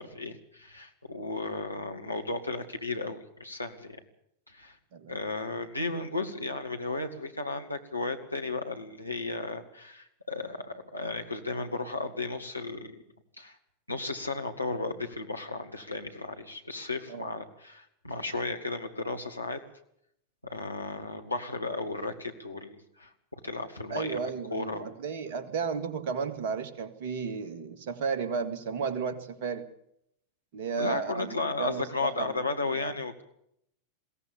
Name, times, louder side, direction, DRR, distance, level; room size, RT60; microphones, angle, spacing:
voice 1, 0.0-4.0 4.5-4.8 5.1-13.0 13.4-13.6 13.9-19.6 20.4-24.2 24.5-24.9 30.8-33.2, left 3 dB, 85° left, 4 dB, 2.2 m, -34 dB
voice 2, 23.9-29.7 30.5-32.4 32.8-32.9, right 5 dB, 50° right, 9 dB, 2.1 m, -33 dB
22.0 x 16.5 x 7.1 m, 0.73 s
figure-of-eight pair, 90°, 0 cm